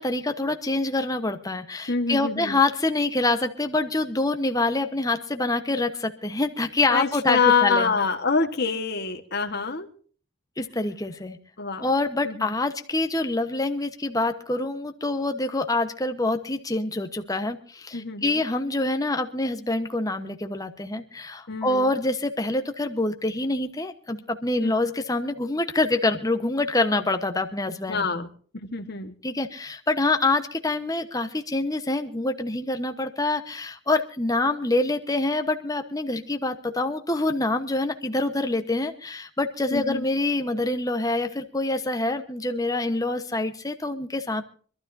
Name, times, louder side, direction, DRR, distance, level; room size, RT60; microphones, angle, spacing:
voice 1, 0.0-8.0 10.6-11.4 11.8-28.3 29.2-44.4, left 2 dB, 15° left, 7 dB, 1.1 m, -26 dB
voice 2, 1.9-2.6 6.9-9.9 11.6-11.9 12.2-12.5 17.9-18.4 21.5-21.9 24.6-24.7 27.9-28.3 28.5-29.1 39.7-40.0, left 5 dB, 50° left, 5 dB, 1.5 m, -25 dB
25.5 x 12.5 x 2.7 m, 0.44 s
head